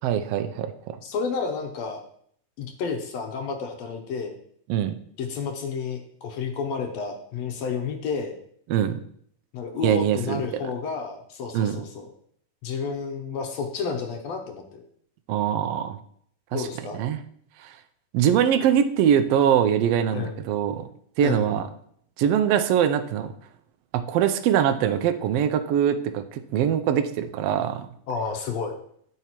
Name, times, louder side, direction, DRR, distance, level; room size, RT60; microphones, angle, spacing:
voice 1, 0.0-1.0 4.7-4.9 8.7-9.0 9.8-10.6 11.5-11.8 15.3-16.0 16.5-16.7 16.9-17.2 17.6-17.7 18.1-20.9 21.2-21.7 22.2-23.3 23.9-27.9, right 9 dB, 85° right, 8 dB, 1.4 m, -23 dB
voice 2, 1.0-2.0 2.6-4.4 5.2-8.4 9.5-12.1 12.6-14.8 16.5-17.0 20.1-20.4 21.2-21.6 28.1-28.7, left 5 dB, 70° left, 4 dB, 1.7 m, -31 dB
12.5 x 4.8 x 2.9 m, 0.66 s
omnidirectional pair, 3.4 m